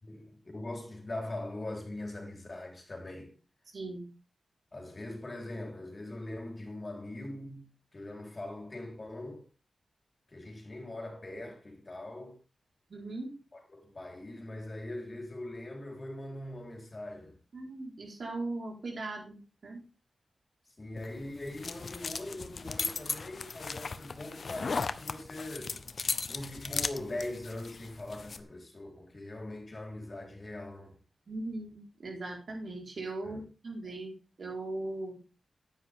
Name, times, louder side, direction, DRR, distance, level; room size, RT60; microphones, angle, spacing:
voice 1, 0.0-3.3 4.7-9.5 10.3-12.4 13.5-17.4 20.8-25.8 26.3-31.0 33.2-33.4, left 1 dB, 40° left, 4.1 m, -41 dB
voice 2, 3.7-4.0 12.9-13.3 17.5-19.8 31.3-34.1 34.4-35.2, right 2 dB, 65° right, 4.7 m, -39 dB
sound 1, 21.0-28.4, left 4 dB, 65° left, 0.7 m, -37 dB
10.0 x 9.5 x 3.7 m
cardioid pair, 45°, 0 cm